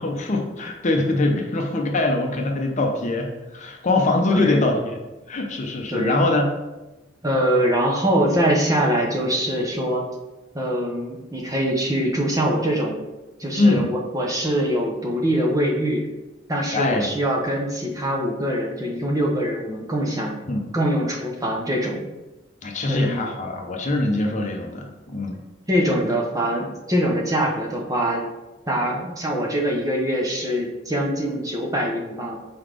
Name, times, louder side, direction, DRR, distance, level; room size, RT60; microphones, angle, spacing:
voice 1, 0.0-5.0 5.3-6.5 13.6-13.9 16.7-17.1 20.5-20.6 22.6-25.4, left 2 dB, 40° left, 2 dB, 0.7 m, -23 dB
voice 2, 4.3-4.7 5.9-6.2 7.2-10.0 10.5-13.0 13.4-16.1 16.5-20.4 20.7-22.0 22.9-23.3 25.7-28.2 28.7-32.4, equal, 20° right, -1 dB, 0.9 m, -23 dB
4.7 x 4.0 x 5.1 m, 1.1 s
head